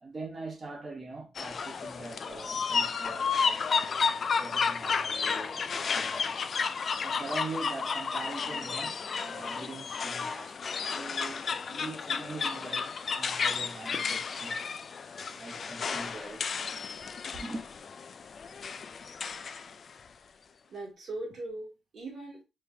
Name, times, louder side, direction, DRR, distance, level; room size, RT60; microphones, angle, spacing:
voice 1, 0.0-4.1 4.4-6.5 7.0-14.6 15.3-16.7 17.3-17.6, right 3 dB, 25° right, 1.3 m, -42 dB
sound 1, 1.4-19.8, left 5 dB, 40° left, 0.3 m, -32 dB
voice 2, 20.7-22.4, right 2 dB, 45° right, 2.6 m, -40 dB
4.6 x 3.6 x 2.8 m
wide cardioid pair, 180°, 0 cm